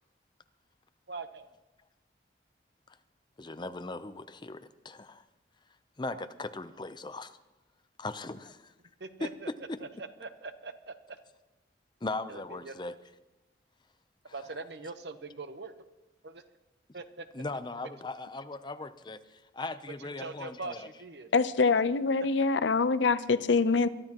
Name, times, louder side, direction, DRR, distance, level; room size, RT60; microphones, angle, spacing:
voice 1, 1.1-1.5 6.1-6.2 9.0-9.5 10.0-11.2 12.3-12.7 14.3-15.7 16.2-16.4 16.9-17.3 20.2-21.3, right 3 dB, 65° right, 9 dB, 1.0 m, -42 dB
voice 2, 3.4-5.2 6.0-7.4 8.0-8.7 9.2-9.8 12.0-13.0 17.3-20.9, left 2 dB, 25° left, 10 dB, 0.6 m, -39 dB
voice 3, 21.3-23.9, left 4 dB, 85° left, 13 dB, 0.7 m, -25 dB
22.5 x 12.5 x 3.0 m, 1.1 s
head